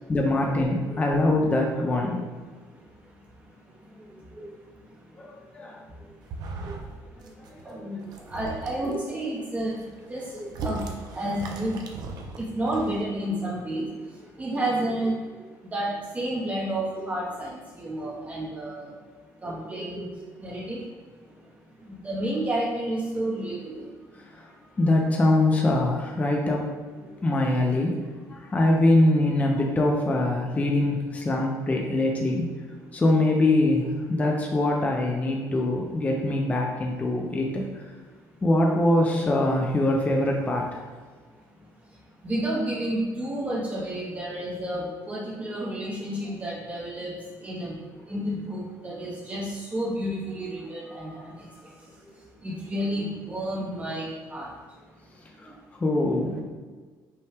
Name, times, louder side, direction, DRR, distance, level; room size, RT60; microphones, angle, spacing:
voice 1, 0.1-2.3 5.2-5.8 7.7-7.8 24.2-24.5 24.8-26.6 27.2-28.0 28.3-32.5 32.9-37.8 38.4-40.8 55.4-55.5 55.8-56.4, left 1 dB, 20° left, 0 dB, 0.5 m, -23 dB
voice 2, 1.9-2.2 4.4-4.5 6.6-6.7 7.6-9.7 10.1-11.8 12.4-13.9 14.4-18.9 19.4-20.8 21.9-23.8 27.0-27.1 42.2-47.1 47.4-47.8 48.1-51.4 52.4-54.5, right 1 dB, 20° right, -4 dB, 0.7 m, -31 dB
sound 1, 6.2-6.9 7.2-7.6 8.0-8.9 9.5-13.0, right 3 dB, 60° right, 0.6 m, -37 dB
5.5 x 2.2 x 3.4 m, 1.4 s
cardioid pair, 135°, 8 cm